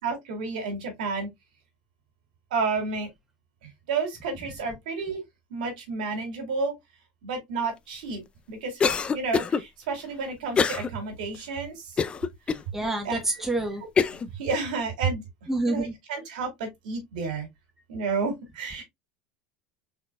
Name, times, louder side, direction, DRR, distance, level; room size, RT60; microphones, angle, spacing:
voice 1, 0.0-1.3 2.5-3.1 3.6-5.2 5.5-6.8 7.2-8.2 8.5-11.9 13.0-13.2 14.3-15.2 15.7-17.5 17.9-18.8, right 4 dB, 80° right, 2.5 m, -31 dB
Cough, 8.8-9.6 10.6-10.9 11.3-11.4 12.0-12.6 13.2-13.3 14.0-14.3, left 6 dB, 25° left, 0.5 m, -24 dB
voice 2, 12.7-13.8 15.5-15.9, right 2 dB, 5° right, 1.5 m, -27 dB
4.3 x 3.9 x 2.4 m
supercardioid pair, 100°, 4 cm